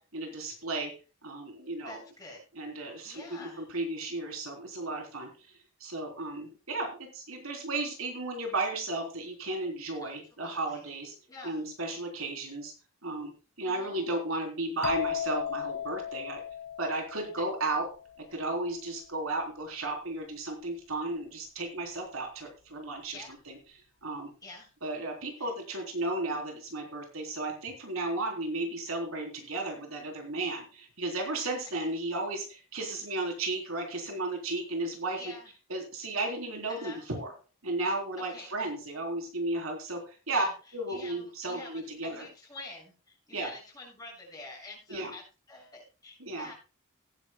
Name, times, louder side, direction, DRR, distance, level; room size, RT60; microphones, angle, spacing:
voice 1, 0.1-0.9 1.2-2.0 2.6-5.3 5.8-11.1 11.4-12.7 13.0-13.3 13.6-16.4 16.8-17.9 18.3-23.6 24.0-24.3 24.8-35.2 35.7-37.3 37.6-40.4 40.7-42.3 43.3-43.5 44.9-45.1 46.2-46.5, right 2 dB, 85° right, 2 dB, 3.7 m, -34 dB
voice 2, 1.8-2.4 3.0-3.7 10.0-10.9 11.3-11.6 13.6-14.0 23.1-23.4 24.4-24.7 25.4-25.5 31.7-31.8 35.1-35.5 36.7-37.1 38.2-38.5 40.3-45.2 45.5-46.5, left 2 dB, 20° left, -2 dB, 7.4 m, -47 dB
sound 1, 14.8-18.5, left 9 dB, 55° left, 0.6 m, -36 dB
17.5 x 10.0 x 2.3 m, 0.33 s
head